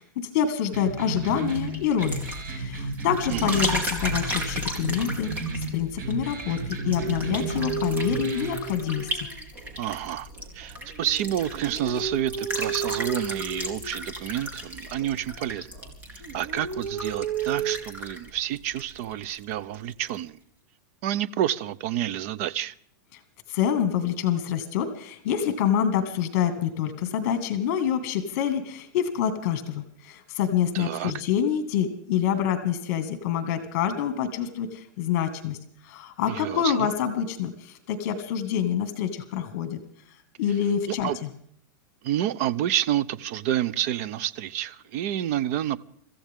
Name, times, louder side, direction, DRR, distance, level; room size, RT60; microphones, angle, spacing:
voice 1, 0.0-9.3 23.1-23.2 23.5-35.6 35.8-39.8 40.4-41.3, left 9 dB, 50° left, 2.2 m, -27 dB
sound 1, 0.7-8.7, right 3 dB, 70° right, 5.9 m, -33 dB
sound 2, 1.1-19.4 19.7-20.2, equal, 15° right, 2.8 m, -35 dB
voice 2, 3.3-3.6 9.8-10.3 10.5-15.7 16.3-20.4 21.0-22.7 30.7-31.1 36.3-36.9 40.9-41.2 42.0-45.8, right 11 dB, 45° right, 0.7 m, -29 dB
sound 3, 6.8-9.8 10.3-14.5 14.9-15.9 16.2-17.8, right 6 dB, 90° right, 2.6 m, -34 dB
26.0 x 14.5 x 3.7 m
supercardioid pair, 160°, 10 cm